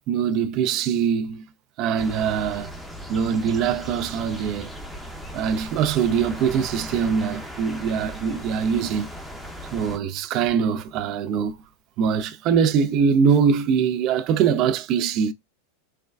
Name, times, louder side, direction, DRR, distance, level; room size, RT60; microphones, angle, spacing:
voice 1, 0.1-1.4 1.8-2.7 3.1-4.7 5.3-9.1 9.7-11.6 12.0-15.3, right 7 dB, 45° right, 0.3 m, -22 dB
sound 1, 2.0-10.0, equal, ahead, 0.6 m, -38 dB
3.3 x 2.2 x 2.2 m
hypercardioid pair, 95°, 0 cm